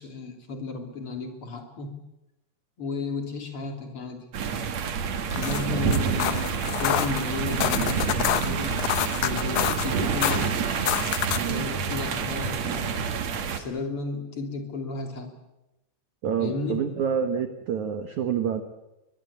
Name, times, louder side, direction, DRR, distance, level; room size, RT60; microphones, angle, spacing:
voice 1, 0.0-2.0 2.8-4.2 5.3-8.8 9.2-10.7 11.4-13.0 13.5-15.3 16.4-16.8, left 3 dB, 35° left, 4 dB, 3.2 m, -34 dB
sound 1, 4.3-13.6, right 6 dB, 55° right, 2.0 m, -28 dB
sound 2, 5.2-11.6, left 13 dB, 80° left, 2.0 m, -29 dB
voice 2, 11.3-11.7 16.2-18.6, right 7 dB, 80° right, 8 dB, 1.7 m, -27 dB
22.5 x 22.0 x 8.4 m, 0.94 s
omnidirectional pair, 5.4 m